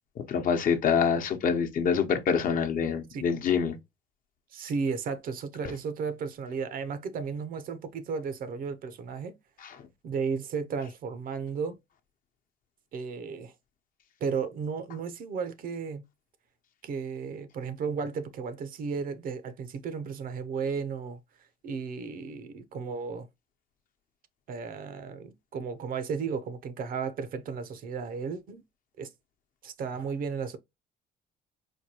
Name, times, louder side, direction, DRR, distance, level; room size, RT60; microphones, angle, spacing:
voice 1, 0.2-3.8 9.6-9.7, left 6 dB, 55° left, 0.8 m, -26 dB
voice 2, 4.5-9.4 10.0-11.8 12.9-13.5 14.2-16.0 16.8-21.2 21.6-23.3 24.5-28.6 29.0-29.1 29.6-30.6, right 5 dB, 55° right, 0.7 m, -34 dB
4.4 x 2.2 x 2.9 m
cardioid pair, 110°, 17 cm